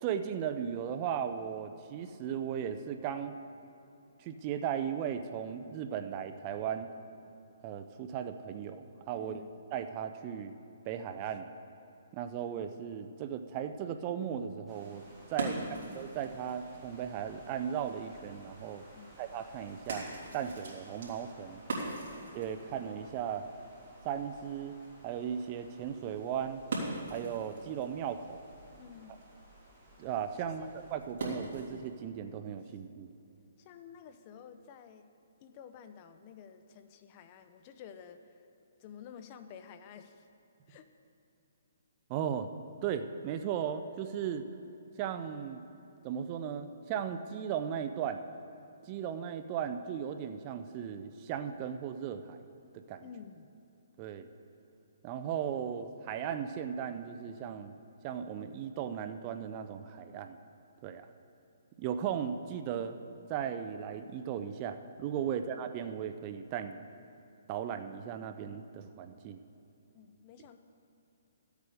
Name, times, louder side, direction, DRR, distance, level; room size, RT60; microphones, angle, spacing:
voice 1, 0.0-3.3 4.2-6.9 7.6-9.4 9.7-10.5 10.8-11.5 12.1-15.0 15.3-15.6 15.9-18.8 19.2-20.1 20.3-21.6 22.3-23.5 24.0-24.8 25.0-26.6 27.1-28.5 30.0-33.1 42.1-42.5 42.8-44.5 45.0-45.6 46.0-48.2 48.9-52.4 52.7-53.1 54.0-54.3 55.0-57.7 58.0-60.4 60.8-61.1 61.8-63.0 63.3-66.9 67.5-69.4, right 8 dB, 30° right, 8 dB, 0.5 m, -36 dB
voice 2, 9.1-9.6 15.5-15.9 19.0-19.1 28.8-29.2 30.4-30.7 32.7-32.8 33.6-35.1 35.4-38.5 38.8-40.3 40.7-40.9 53.0-53.5 65.3-65.5 69.9-70.6, left 7 dB, 30° left, 9 dB, 0.6 m, -51 dB
sound 1, 14.7-31.0, right 1 dB, ahead, 2.6 m, -58 dB
sound 2, 14.8-31.9, right 2 dB, 55° right, 3.1 m, -44 dB
14.0 x 8.2 x 5.0 m, 2.9 s
hypercardioid pair, 155°, 0 cm